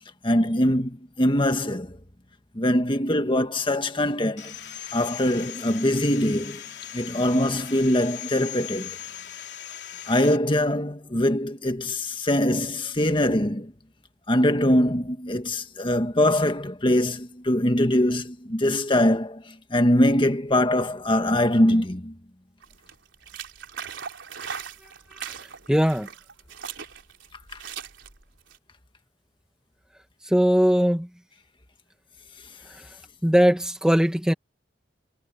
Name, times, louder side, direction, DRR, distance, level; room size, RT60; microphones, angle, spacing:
voice 1, 0.2-2.0 2.5-4.5 4.9-6.6 6.9-9.0 10.1-13.7 14.3-22.1, left 1 dB, 25° left, 1.7 m, -23 dB
Sawing, 4.4-10.4, left 11 dB, 65° left, 3.7 m, -39 dB
sound 1, 22.6-28.6, right 7 dB, 90° right, 3.7 m, -39 dB
voice 2, 25.7-26.1 30.2-31.1 32.8-32.9 33.2-34.3, equal, 5° right, 1.1 m, -20 dB
head